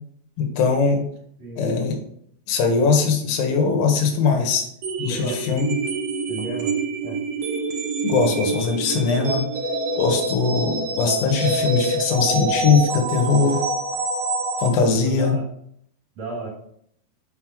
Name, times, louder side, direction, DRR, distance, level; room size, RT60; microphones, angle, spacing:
voice 1, 0.4-1.0 1.6-2.0 2.5-4.6 5.0-5.6 8.0-9.5 10.0-13.6 14.6-15.3, left 5 dB, 80° left, 3 dB, 2.7 m, -20 dB
sound 1, 4.8-14.7, right 2 dB, 75° right, 1.4 m, -26 dB
voice 2, 5.1-5.6 6.3-6.7 7.0-7.2 15.0-15.4 16.2-16.5, right 2 dB, 55° right, -2 dB, 2.5 m, -33 dB
6.0 x 5.2 x 3.7 m, 0.68 s
omnidirectional pair, 4.1 m